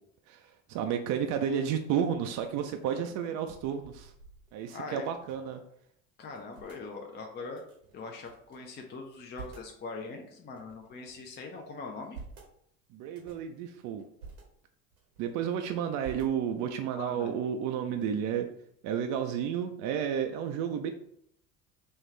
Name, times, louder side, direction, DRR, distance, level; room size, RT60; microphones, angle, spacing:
voice 1, 0.3-4.1 4.5-5.6 12.9-14.0 15.2-18.5 18.8-20.9, right 8 dB, 50° right, 6 dB, 0.4 m, -32 dB
sound 1, 2.2-5.6 5.9-6.0 6.2-6.8 7.5-8.6 9.0-9.8 10.3-11.3 11.8-12.5 13.0-13.5 14.0-14.4 14.9-15.6 16.0-16.7, right 4 dB, 90° right, 1.1 m, -50 dB
voice 2, 4.7-5.1 6.2-7.6 7.9-12.2 16.9-17.3, left 3 dB, 25° left, 2 dB, 0.5 m, -41 dB
4.3 x 2.3 x 3.1 m, 0.70 s
hypercardioid pair, 65°, 42 cm